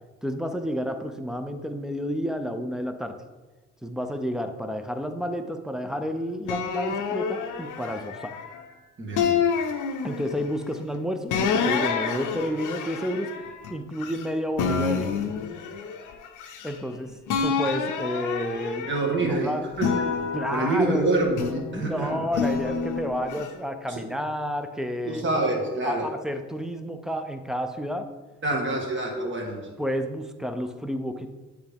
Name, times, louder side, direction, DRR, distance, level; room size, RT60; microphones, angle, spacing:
voice 1, 0.2-3.2 3.8-8.4 10.0-13.4 13.7-15.1 16.6-19.7 20.3-21.1 21.7-25.3 25.8-28.1 28.5-28.6 29.8-31.3, equal, ahead, 7 dB, 0.5 m, -30 dB
sound 1, 6.5-8.6 9.2-10.5 11.3-14.3 14.6-16.9 17.3-19.3 19.8-21.7 22.3-23.5, left 6 dB, 80° left, 0.6 m, -28 dB
voice 2, 9.0-9.3 18.9-20.2 20.5-22.2 23.9-24.0 25.1-26.1 28.4-29.6, right 2 dB, 40° right, 0 dB, 1.6 m, -26 dB
8.1 x 3.5 x 3.5 m, 1.2 s
cardioid pair, 90°, 30 cm